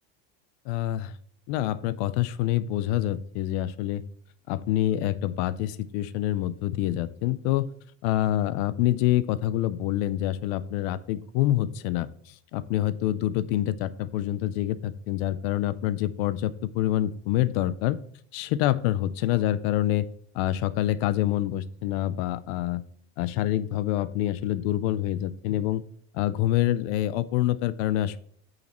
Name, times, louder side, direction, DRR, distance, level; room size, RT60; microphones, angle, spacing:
voice 1, 0.7-1.1 1.5-4.0 4.5-7.7 8.0-12.1 12.5-18.0 18.3-20.1 20.3-22.8 23.2-25.8 26.1-28.2, left 13 dB, 70° left, 17 dB, 0.6 m, -26 dB
8.7 x 6.5 x 3.1 m, 0.62 s
cardioid pair, 145°, 33 cm